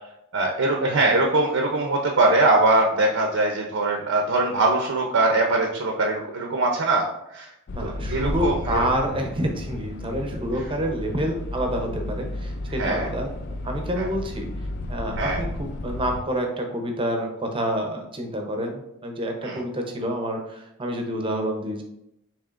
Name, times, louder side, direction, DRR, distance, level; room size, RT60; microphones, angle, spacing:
voice 1, 0.3-7.1 7.3-7.5 7.8-8.8 12.8-13.1 14.0-14.1 15.2-15.4 19.4-19.6, right 2 dB, 65° right, 1 dB, 0.6 m, -22 dB
sound 1, 7.7-16.2, left 2 dB, 50° left, 0.4 m, -33 dB
voice 2, 7.7-13.3 13.6-14.5 14.9-21.8, right 1 dB, 25° right, 3 dB, 0.7 m, -28 dB
6.9 x 3.0 x 2.5 m, 0.84 s
head